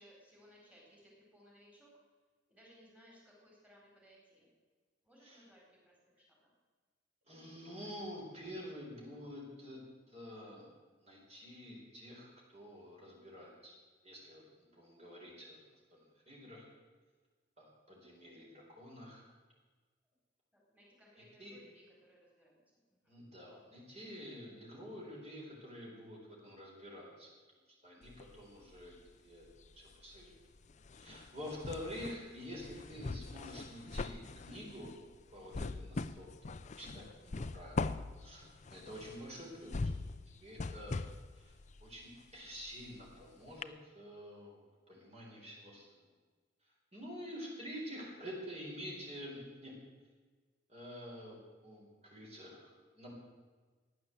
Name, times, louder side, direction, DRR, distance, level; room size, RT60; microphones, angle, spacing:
voice 1, 0.0-1.9 2.5-4.5 5.0-6.5 20.5-23.1, equal, 5° right, -4 dB, 4.4 m, -62 dB
voice 2, 7.3-9.8 10.1-10.7 11.0-13.7 14.0-15.6 15.9-16.6 17.6-19.2 21.4-21.6 23.1-27.3 27.8-30.3 30.9-35.0 35.3-36.3 36.8-37.9 38.2-39.9 40.4-41.0 41.4-41.5 41.8-46.0 46.9-49.7 50.7-53.1, equal, 35° right, -3 dB, 4.4 m, -48 dB
sound 1, 28.0-29.1 29.4-43.2 43.6-43.7, left 3 dB, 40° left, 0.5 m, -42 dB
15.5 x 10.5 x 7.9 m, 1.4 s
head